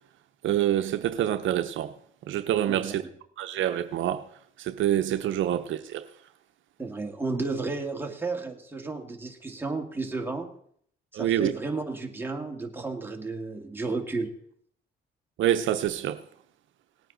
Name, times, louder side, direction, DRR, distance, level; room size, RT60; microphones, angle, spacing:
voice 1, 0.4-1.9 2.3-3.0 3.4-4.2 4.6-6.0 11.1-11.5 15.4-16.2, right 11 dB, 75° right, 0.7 m, -26 dB
voice 2, 2.7-3.1 6.8-10.5 11.1-14.3, right 3 dB, 10° right, 2.0 m, -33 dB
18.5 x 9.2 x 3.9 m
cardioid pair, 90°, 20 cm